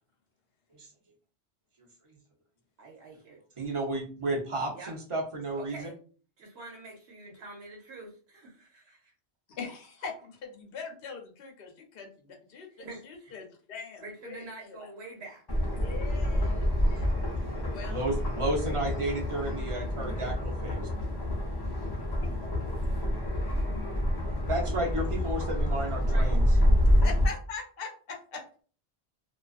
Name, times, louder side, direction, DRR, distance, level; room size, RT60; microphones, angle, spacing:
voice 1, 2.8-3.4 4.7-4.9 5.5-5.9 6.4-9.1 12.7-13.3 14.0-15.4 26.1-26.3, right 2 dB, 80° right, -1 dB, 0.9 m, -46 dB
voice 2, 3.6-5.8 17.0-17.1 17.9-20.9 24.5-26.5, right 1 dB, 40° right, 1 dB, 0.5 m, -32 dB
voice 3, 9.5-14.9 15.7-17.1 17.7-18.0 18.3-18.8 22.0-22.3 26.8-28.6, left 5 dB, 65° left, 3 dB, 0.8 m, -42 dB
sound 1, 15.5-27.3, left 1 dB, 40° left, 0.3 m, -27 dB
2.3 x 2.3 x 2.4 m, 0.41 s
omnidirectional pair, 1.1 m